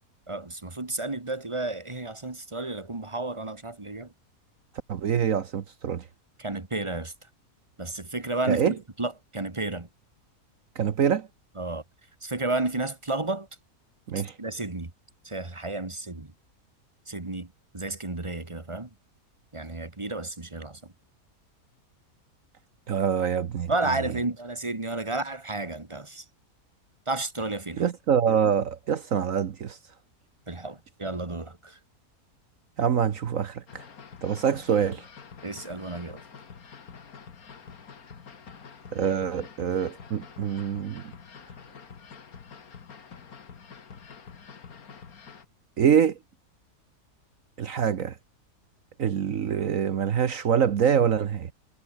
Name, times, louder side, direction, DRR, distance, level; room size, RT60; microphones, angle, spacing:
voice 1, 0.3-4.1 6.4-7.1 7.8-9.9 11.6-11.8 12.2-13.5 14.2-14.9 15.2-16.3 17.1-18.9 19.5-20.8 23.7-26.2 27.1-27.9 30.5-31.8 35.4-36.2, right 2 dB, 20° right, 1.9 m, -32 dB
voice 2, 4.9-6.0 8.5-8.7 10.7-11.3 14.1-14.3 22.9-23.7 27.8-29.8 32.8-33.8 34.2-35.0 38.9-41.1 45.8-46.2 47.6-48.1 49.0-51.5, right 8 dB, 65° right, 1.4 m, -25 dB
sound 1, 33.7-45.5, left 6 dB, 70° left, 2.2 m, -47 dB
omnidirectional pair, 1.6 m